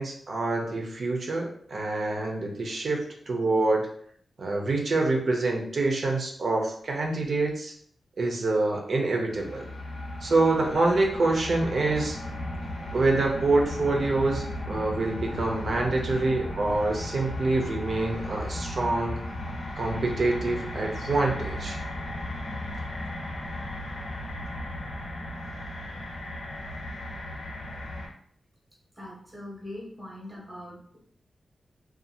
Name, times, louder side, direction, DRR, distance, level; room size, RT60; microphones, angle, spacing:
voice 1, 0.0-3.9 4.4-7.7 8.2-9.7 10.2-12.2 12.9-19.2 19.8-21.8, right 2 dB, 60° right, 1 dB, 0.6 m, -26 dB
sound 1, 9.3-28.1, left 1 dB, 80° left, 0.8 m, -35 dB
voice 2, 29.0-31.0, left 1 dB, 15° right, -4 dB, 0.8 m, -41 dB
2.6 x 2.3 x 2.7 m, 0.62 s
wide cardioid pair, 110°, 0 cm